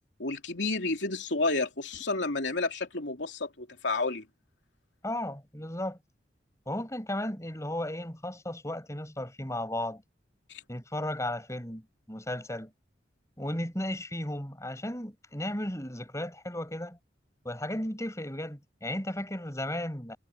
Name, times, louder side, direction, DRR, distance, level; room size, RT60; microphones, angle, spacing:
voice 1, 0.2-4.2 10.5-10.6, left 3 dB, 80° left, 3.0 m, -30 dB
voice 2, 5.0-6.0 6.7-10.0 10.7-12.7 13.4-17.0 17.4-20.2, left 1 dB, 15° left, 5.9 m, -35 dB
head